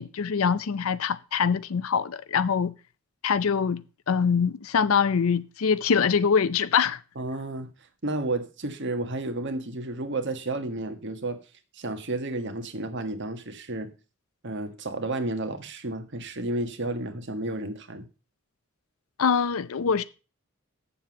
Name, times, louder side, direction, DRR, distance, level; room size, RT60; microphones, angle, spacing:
voice 1, 0.0-2.7 3.2-3.8 4.1-7.0 19.2-20.0, left 6 dB, 75° left, 0.5 m, -24 dB
voice 2, 7.1-7.7 8.0-11.4 11.7-13.9 14.4-18.1, right 2 dB, 55° right, 1.5 m, -31 dB
7.8 x 7.1 x 7.1 m
head